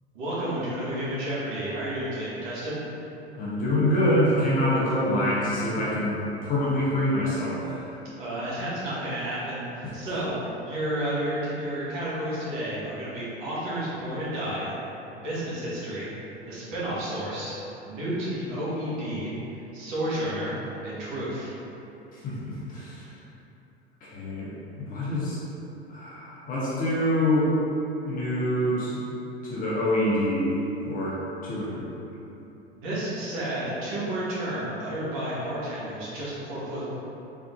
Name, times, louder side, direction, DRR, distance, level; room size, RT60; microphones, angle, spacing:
voice 1, 0.1-2.8 8.2-14.7 15.2-16.1 16.4-17.5 17.8-19.3 19.7-20.6 20.8-21.5 32.7-36.8, right 1 dB, 50° right, -9 dB, 1.3 m, -31 dB
voice 2, 3.4-7.9 22.2-23.0 24.0-24.5 24.9-25.4 25.9-27.5 28.1-29.0 29.5-30.6 30.9-31.1 31.4-31.9, left 1 dB, 25° left, -8 dB, 0.8 m, -25 dB
3.7 x 3.5 x 2.4 m, 3.0 s
figure-of-eight pair, 85°, 32 cm